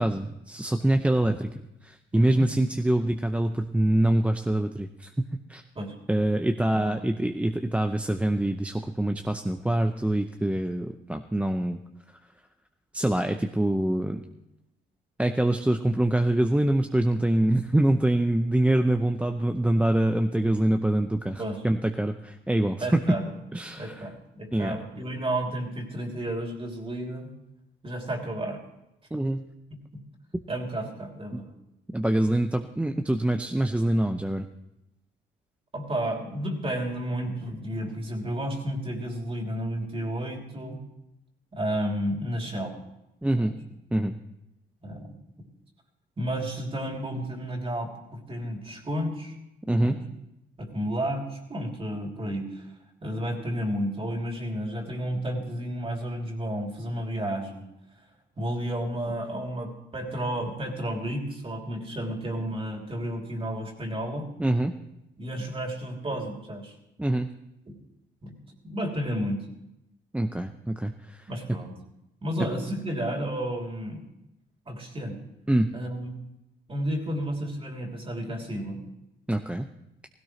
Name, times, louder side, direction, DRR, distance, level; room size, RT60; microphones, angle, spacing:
voice 1, 0.0-1.5 1.8-5.6 6.1-11.8 12.9-14.2 15.2-23.0 23.5-24.0 24.5-24.8 29.1-29.4 30.3-30.4 31.3-31.4 31.9-34.5 43.2-43.5 43.9-44.2 49.7-50.0 64.4-64.7 67.0-67.3 70.1-71.6 75.5-75.7 79.3-79.7, right 1 dB, 5° right, 5 dB, 0.6 m, -25 dB
voice 2, 2.1-2.5 5.7-5.9 6.7-7.0 21.4-21.6 22.8-23.3 23.7-27.3 27.8-28.6 30.5-31.5 35.7-40.8 41.5-42.7 43.4-43.5 44.8-45.1 46.2-49.3 49.8-50.0 50.6-52.7 53.0-57.7 58.4-64.3 65.2-66.7 67.7-67.8 68.2-68.4 68.6-69.4 71.3-71.8 72.2-74.0 74.7-75.2 75.7-76.1 76.7-78.8, right 1 dB, 30° right, 1 dB, 3.0 m, -32 dB
16.5 x 16.5 x 3.2 m, 0.87 s
cardioid pair, 90°, 20 cm